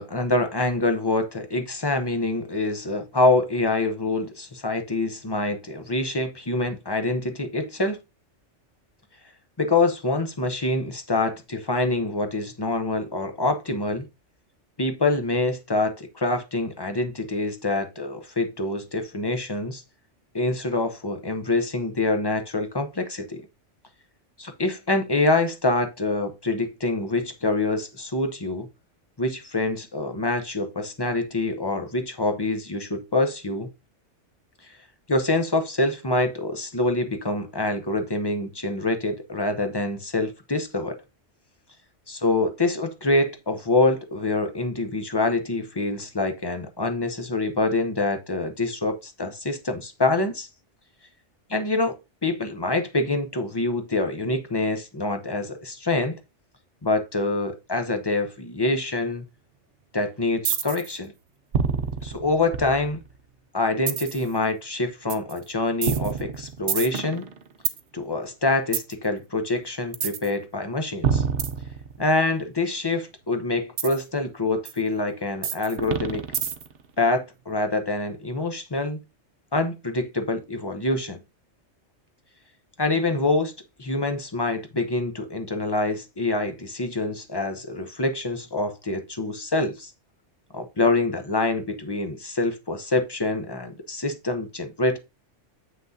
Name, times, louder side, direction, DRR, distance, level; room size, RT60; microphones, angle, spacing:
voice 1, 0.0-8.0 9.6-14.1 14.8-19.8 20.3-23.4 24.4-28.7 29.2-33.7 35.1-41.0 42.1-50.5 51.5-52.0 52.2-56.2 56.8-59.2 59.9-61.1 62.0-63.0 63.5-67.3 67.9-71.2 72.0-76.2 77.0-79.0 79.5-81.2 82.8-83.5 83.8-89.9 90.5-95.0, left 2 dB, 25° left, 0.7 m, -25 dB
sound 1, 60.4-60.9 61.5-63.1 63.9-64.3 65.1-65.3 65.8-67.8 68.7-68.9 69.9-70.3 71.0-72.2 73.8-74.0 74.6-74.7 75.4-76.8, right 7 dB, 60° right, 0.9 m, -27 dB
7.5 x 6.0 x 2.7 m
omnidirectional pair, 1.2 m